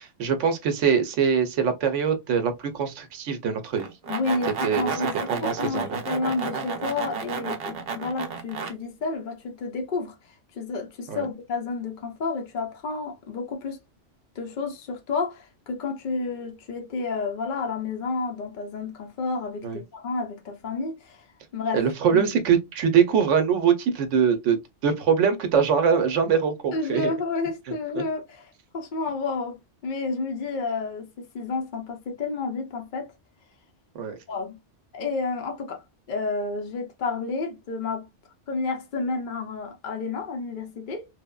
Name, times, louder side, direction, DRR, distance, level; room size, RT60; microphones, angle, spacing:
voice 1, 0.2-3.9 4.6-4.9 5.3-6.0 11.1-11.2 19.6-19.8 21.7-27.1 28.0-28.1 34.0-34.2, right 7 dB, 85° right, 1.0 m, -23 dB
sound 1, 3.8-8.7, right 5 dB, 60° right, 0.8 m, -31 dB
voice 2, 4.1-13.8 14.4-21.2 21.5-22.4 26.7-33.1 34.3-34.6 34.9-35.8 36.1-38.1 38.5-41.1, left 4 dB, 55° left, 0.6 m, -30 dB
3.2 x 2.0 x 2.2 m
omnidirectional pair, 1.2 m